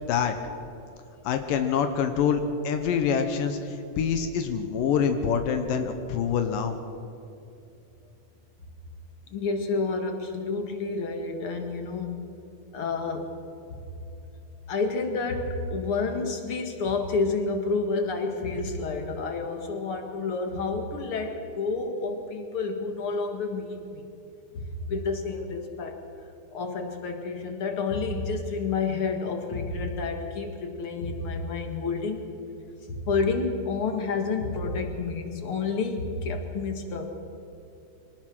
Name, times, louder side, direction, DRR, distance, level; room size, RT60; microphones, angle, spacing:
voice 1, 1.2-6.8, left 7 dB, 85° left, 7 dB, 2.8 m, -26 dB
voice 2, 9.3-12.1 12.7-13.3 14.7-24.0 24.5-26.0 26.5-32.3 32.9-37.1, left 4 dB, 45° left, 5 dB, 2.3 m, -29 dB
24.0 x 19.0 x 6.2 m, 2.7 s
omnidirectional pair, 3.8 m